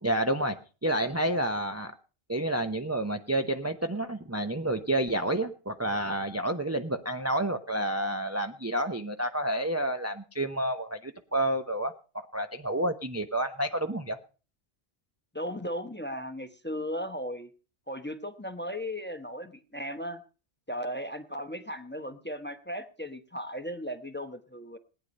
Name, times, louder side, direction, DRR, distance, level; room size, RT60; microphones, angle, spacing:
voice 1, 0.0-1.9 2.3-11.9 12.3-14.2, right 1 dB, 15° right, 6 dB, 0.8 m, -29 dB
voice 2, 15.3-17.5 17.9-20.2 20.7-24.8, equal, 10° left, 9 dB, 1.1 m, -36 dB
18.5 x 10.0 x 5.3 m, 0.37 s
omnidirectional pair, 1.1 m